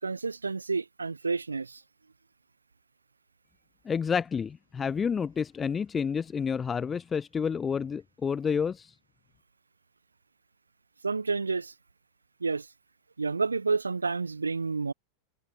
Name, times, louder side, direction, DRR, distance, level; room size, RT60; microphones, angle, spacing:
voice 1, 0.0-1.8 11.0-11.7 12.4-12.7 13.2-14.9, right 4 dB, 75° right, 7.0 m, -29 dB
voice 2, 3.9-9.0, left 6 dB, 20° left, 7.2 m, -29 dB
figure-of-eight pair, 90°, 0 cm